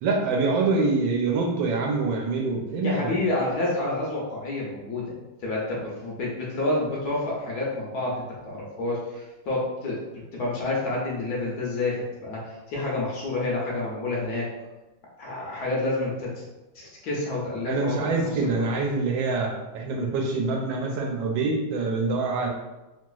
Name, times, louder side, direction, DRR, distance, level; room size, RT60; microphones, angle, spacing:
voice 1, 0.0-3.1 17.7-22.5, right 3 dB, 80° right, 1 dB, 1.3 m, -25 dB
voice 2, 2.8-5.2 5.4-14.5 15.2-16.4 16.7-18.7, left 2 dB, 65° left, -4 dB, 1.1 m, -29 dB
3.2 x 2.9 x 2.3 m, 1.1 s
omnidirectional pair, 2.0 m